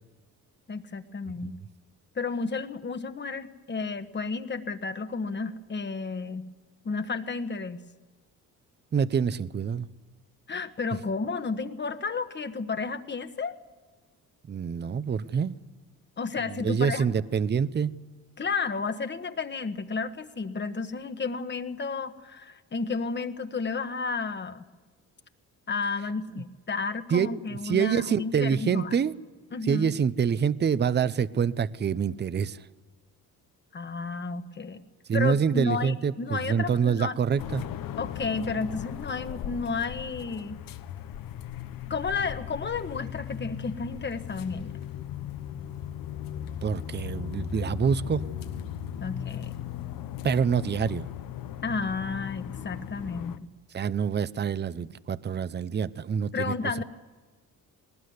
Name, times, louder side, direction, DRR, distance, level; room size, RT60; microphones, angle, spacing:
voice 1, 0.7-1.6 2.1-6.5 6.8-7.8 10.5-13.6 16.2-17.1 18.4-24.6 25.7-28.9 29.5-29.9 33.7-34.8 35.1-37.2 38.0-40.6 41.9-44.8 49.0-49.5 51.6-53.5 56.3-56.8, left 4 dB, 30° left, 1.4 m, -32 dB
voice 2, 8.9-9.9 14.5-15.6 16.5-17.9 27.1-29.1 29.6-32.6 35.1-37.6 46.6-48.2 50.2-51.1 53.7-56.5, right 7 dB, 30° right, 0.7 m, -26 dB
sound 1, 37.4-53.4, left 10 dB, 75° left, 1.1 m, -37 dB
20.5 x 19.5 x 9.5 m
cardioid pair, 115°, 34 cm